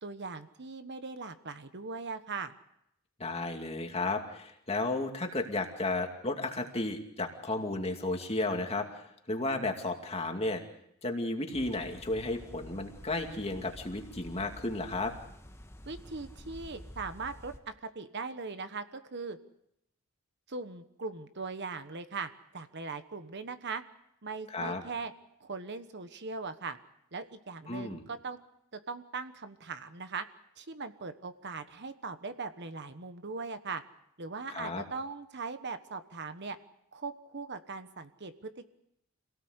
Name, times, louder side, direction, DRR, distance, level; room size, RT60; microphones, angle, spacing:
voice 1, 0.0-2.5 15.9-19.4 20.5-23.8 24.2-25.1 25.4-26.8 27.1-28.4 28.7-30.2 30.6-33.8 34.2-36.6 36.9-38.7, right 4 dB, 50° right, 10 dB, 1.2 m, -40 dB
voice 2, 3.2-10.6 11.0-15.1 24.5-24.8 27.7-28.0 34.5-34.8, left 2 dB, 25° left, 4 dB, 2.4 m, -33 dB
sound 1, 11.5-17.6, equal, 10° left, 1.5 m, -49 dB
26.5 x 18.0 x 8.1 m, 0.79 s
head